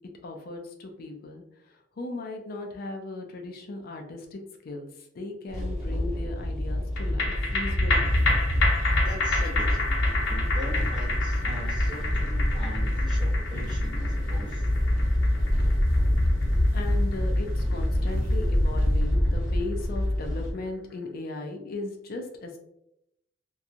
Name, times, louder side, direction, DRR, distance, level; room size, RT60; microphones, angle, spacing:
voice 1, 0.2-8.1 16.7-22.6, left 2 dB, 50° left, 3 dB, 0.4 m, -37 dB
sound 1, 5.5-20.5, left 1 dB, ahead, 1.1 m, -26 dB
sound 2, 7.0-19.6 20.0-20.1, left 3 dB, 80° left, 0.7 m, -31 dB
sound 3, 8.0-19.0, equal, 90° right, 0.5 m, -38 dB
voice 2, 9.0-10.0 10.3-14.6, equal, 25° right, -2 dB, 0.7 m, -41 dB
2.8 x 2.3 x 2.5 m, 0.81 s
head